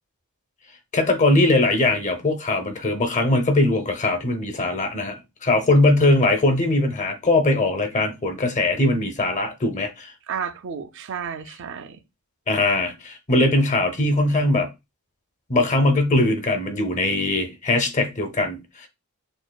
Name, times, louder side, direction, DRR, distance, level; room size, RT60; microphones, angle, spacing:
voice 1, 0.9-10.1 12.5-14.7 15.5-18.9, left 2 dB, 35° left, 0.7 m, -21 dB
voice 2, 10.3-12.0, right 6 dB, 55° right, 0.4 m, -32 dB
6.4 x 2.4 x 2.2 m
head